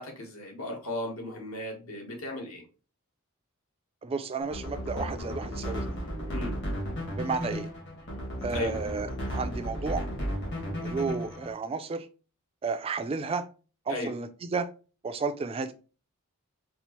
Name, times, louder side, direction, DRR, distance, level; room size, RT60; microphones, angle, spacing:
voice 1, 0.0-2.6 6.3-6.6 8.5-8.8 13.9-14.1, left 1 dB, 70° left, 1.2 m, -36 dB
voice 2, 4.0-5.8 7.2-7.7 8.4-10.1 10.8-12.1 12.6-13.5 13.9-14.7 15.0-15.7, right 4 dB, 25° right, 0.3 m, -32 dB
sound 1, 4.4-11.5, equal, 55° left, 1.4 m, -34 dB
4.3 x 2.0 x 2.9 m
head